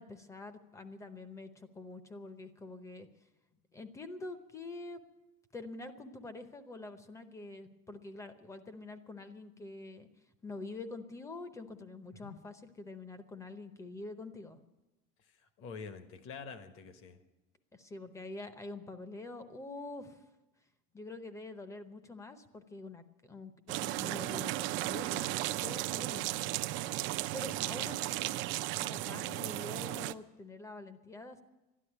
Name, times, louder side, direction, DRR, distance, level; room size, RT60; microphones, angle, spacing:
voice 1, 0.0-3.1 3.7-5.0 5.5-10.1 10.4-14.6 17.7-20.2 20.9-25.3 25.6-26.3 27.3-28.3 28.8-31.4, left 2 dB, 10° left, 10 dB, 0.8 m, -46 dB
voice 2, 15.6-17.2 27.4-28.0 29.0-29.2, left 5 dB, 45° left, 9 dB, 1.3 m, -47 dB
sound 1, 23.7-30.1, right 16 dB, 45° right, 0.4 m, -35 dB
13.0 x 11.5 x 9.8 m, 1.0 s
cardioid pair, 175°, 29 cm